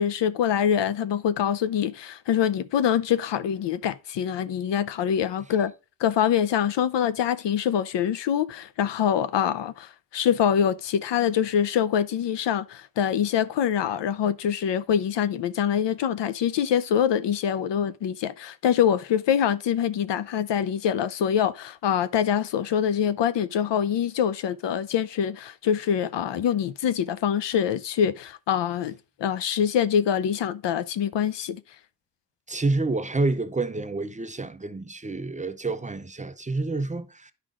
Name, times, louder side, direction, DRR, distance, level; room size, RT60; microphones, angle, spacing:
voice 1, 0.0-5.7 6.0-31.6, left 9 dB, 85° left, 0.7 m, -25 dB
voice 2, 32.5-37.3, right 3 dB, 20° right, 0.5 m, -28 dB
10.5 x 5.1 x 3.7 m
cardioid pair, 110°, 41 cm